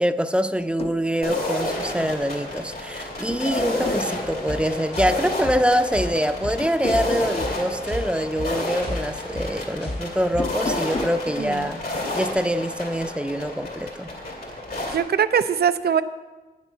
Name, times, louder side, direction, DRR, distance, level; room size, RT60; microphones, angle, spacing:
voice 1, 0.0-11.8 12.1-14.1, equal, 5° right, 9 dB, 0.6 m, -24 dB
sound 1, 0.6-1.0 2.6-2.9 3.3-4.1 6.6-7.4 10.3-11.2, left 2 dB, 35° left, 0.7 m, -32 dB
sound 2, 1.2-15.0, left 1 dB, 70° left, 3.0 m, -30 dB
sound 3, 4.2-10.5, left 1 dB, 90° left, 3.4 m, -34 dB
voice 2, 11.4-11.7 14.9-16.0, right 8 dB, 80° right, 12 dB, 0.5 m, -22 dB
9.9 x 7.4 x 7.0 m, 1.3 s
wide cardioid pair, 70°, 16 cm